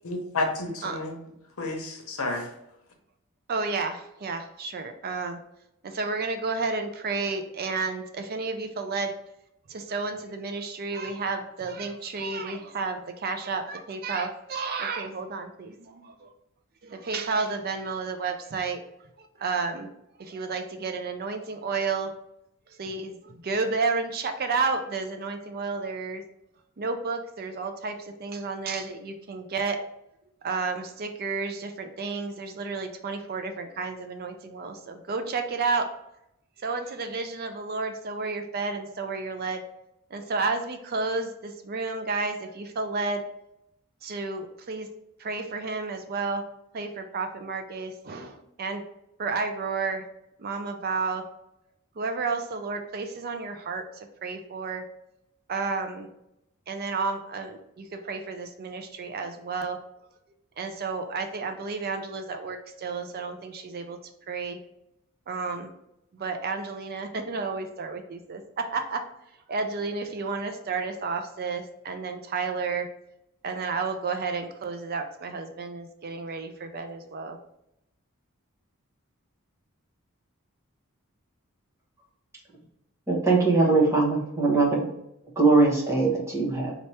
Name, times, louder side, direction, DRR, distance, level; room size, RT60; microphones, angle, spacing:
voice 1, 0.0-1.1 1.6-2.5, left 2 dB, 80° left, 0.9 m, -30 dB
voice 2, 3.5-5.4 5.8-9.1 9.7-16.3 16.8-18.8 19.2-19.9 20.2-22.1 22.8-26.2 26.8-29.8 30.4-35.9 36.6-39.6 40.1-43.2 44.0-44.9 45.2-46.4 46.7-48.8 49.2-50.0 50.4-51.2 52.0-54.8 55.5-56.1 56.7-59.8 60.6-64.0 64.3-64.6 65.3-65.7 66.1-69.0 69.5-72.9 73.4-77.4, right 4 dB, 45° right, 0.4 m, -31 dB
voice 3, 83.1-84.9 85.4-86.8, right 3 dB, 15° right, 1.1 m, -21 dB
4.3 x 2.9 x 3.3 m
head